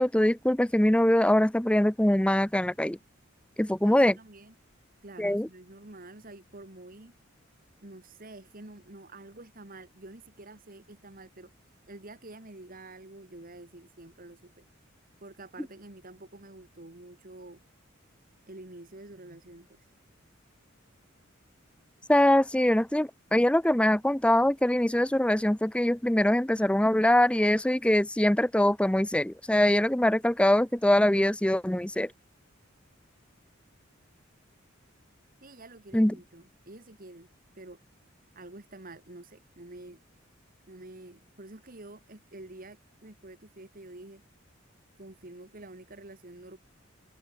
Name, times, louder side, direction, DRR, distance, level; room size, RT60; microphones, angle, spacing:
voice 1, 0.0-3.0 3.6-4.1 5.2-5.5 22.1-32.1 35.9-36.1, left 1 dB, 5° left, 0.6 m, -23 dB
voice 2, 3.8-4.5 5.0-7.1 7.8-14.7 15.2-17.6 18.5-19.9 35.4-37.8 38.3-40.0 40.7-44.2 45.0-46.6, right 2 dB, 45° right, 2.1 m, -48 dB
head